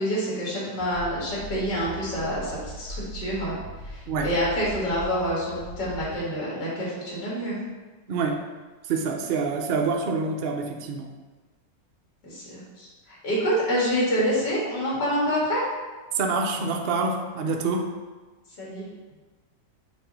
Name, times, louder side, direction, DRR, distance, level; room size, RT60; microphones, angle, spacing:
voice 1, 0.0-3.6 3.8-7.6 12.2-15.7 18.6-18.9, equal, 75° left, -6 dB, 2.5 m, -27 dB
sound 1, 0.8-6.2, right 1 dB, 35° left, 1.1 m, -39 dB
voice 2, 8.1-8.4 8.8-11.1 16.1-17.9, right 4 dB, 85° right, 2 dB, 0.5 m, -26 dB
7.2 x 2.7 x 5.2 m, 1.3 s
omnidirectional pair, 1.9 m